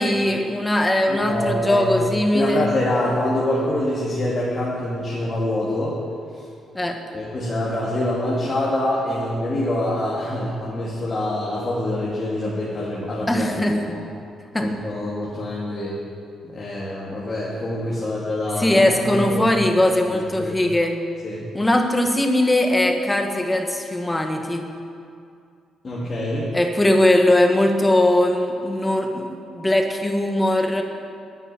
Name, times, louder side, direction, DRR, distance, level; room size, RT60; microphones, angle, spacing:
voice 1, 0.0-2.7 6.7-7.0 13.3-14.0 14.5-14.7 18.6-21.0 21.5-24.7 26.5-30.8, left 1 dB, 15° left, 4 dB, 1.6 m, -20 dB
voice 2, 1.1-2.1 2.3-6.0 6.3-6.4 7.1-14.0 14.6-15.9 16.4-19.5 20.1-20.6 21.2-21.5 25.8-26.5, left 1 dB, 35° left, -6 dB, 2.6 m, -25 dB
10.0 x 9.3 x 9.1 m, 2.4 s
cardioid pair, 90°, 0 cm